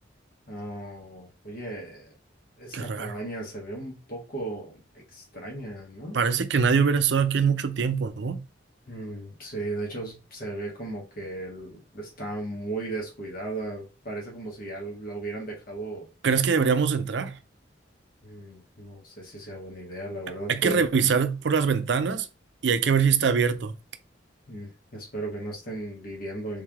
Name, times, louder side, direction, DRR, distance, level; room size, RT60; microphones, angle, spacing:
voice 1, 0.5-2.1 2.6-4.8 5.1-6.2 8.9-16.1 18.2-20.8 24.5-26.6, right 2 dB, 50° left, 1.5 m, -36 dB
voice 2, 2.7-3.1 6.1-8.4 16.2-17.4 20.5-22.3 22.6-23.7, right 6 dB, 70° right, 0.5 m, -23 dB
3.5 x 3.3 x 3.5 m
head